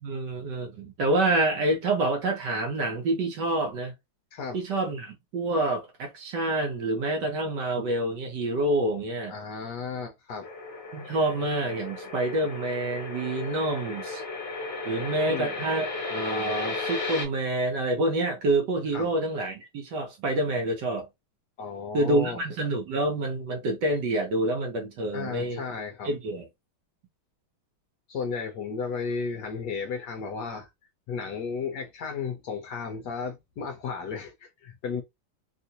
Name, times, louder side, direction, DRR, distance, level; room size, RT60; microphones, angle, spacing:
voice 1, 0.0-3.9 4.5-9.3 10.9-14.2 14.8-21.1 21.9-25.6 26.0-26.5, right 2 dB, 65° right, 1.3 m, -27 dB
voice 2, 9.3-10.5 15.2-15.6 18.9-19.1 21.6-22.4 25.1-26.1 28.1-30.7 31.1-35.0, left 5 dB, 65° left, 1.1 m, -34 dB
sound 1, 10.4-17.2, left 3 dB, 40° left, 1.1 m, -35 dB
3.5 x 2.5 x 2.8 m
omnidirectional pair, 2.3 m